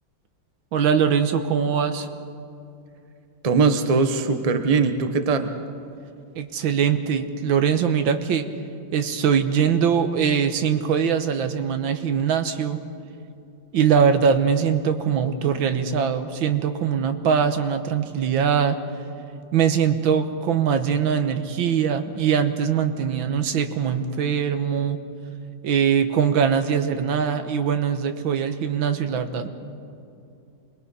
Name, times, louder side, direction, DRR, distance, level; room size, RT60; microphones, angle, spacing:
voice 1, 0.7-2.1 6.4-8.5 8.9-12.8 13.7-18.8 19.5-25.0 25.6-29.5, right 7 dB, 85° right, 8 dB, 1.8 m, -22 dB
voice 2, 3.4-5.6, right 4 dB, 30° right, 7 dB, 0.8 m, -21 dB
26.5 x 21.0 x 5.5 m, 2.6 s
omnidirectional pair, 2.1 m